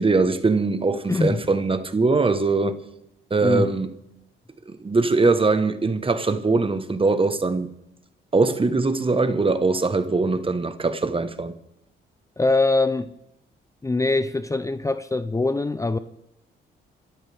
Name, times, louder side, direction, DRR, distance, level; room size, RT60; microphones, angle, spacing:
voice 1, 0.0-2.8 3.3-3.9 4.7-7.7 8.3-11.5, right 3 dB, 25° right, 1.3 m, -21 dB
voice 2, 1.1-1.4 3.4-3.8 12.4-13.1 13.8-16.0, left 3 dB, 15° left, 0.6 m, -23 dB
27.0 x 13.5 x 3.5 m
cardioid pair, 75°, 20 cm